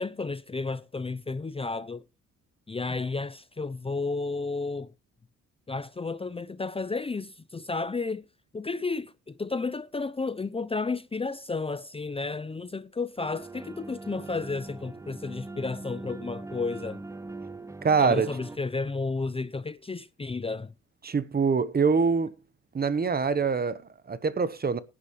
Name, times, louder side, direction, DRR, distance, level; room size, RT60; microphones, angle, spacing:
voice 1, 0.0-2.0 2.7-4.9 5.7-8.3 8.5-17.0 18.0-20.7, left 3 dB, 20° left, 0.6 m, -32 dB
sound 1, 13.2-18.6, right 2 dB, 10° right, 0.9 m, -41 dB
voice 2, 17.8-18.3 21.0-22.3 22.7-24.8, right 5 dB, 30° right, 1.1 m, -24 dB
18.5 x 10.0 x 3.2 m
cardioid pair, 90°, 30 cm